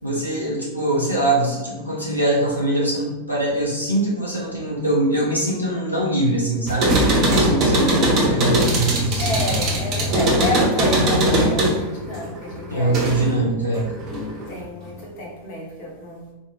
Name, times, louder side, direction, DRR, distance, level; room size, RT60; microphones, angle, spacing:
voice 1, 0.0-9.6 12.7-13.9, right 1 dB, 85° left, -6 dB, 0.5 m, -23 dB
sound 1, 6.7-13.4 13.7-14.6, right 1 dB, 35° right, 0.6 m, -20 dB
voice 2, 9.2-13.6 14.5-16.3, left 1 dB, 45° left, -4 dB, 0.8 m, -30 dB
2.2 x 2.1 x 2.9 m, 1.1 s
figure-of-eight pair, 90°, 0 cm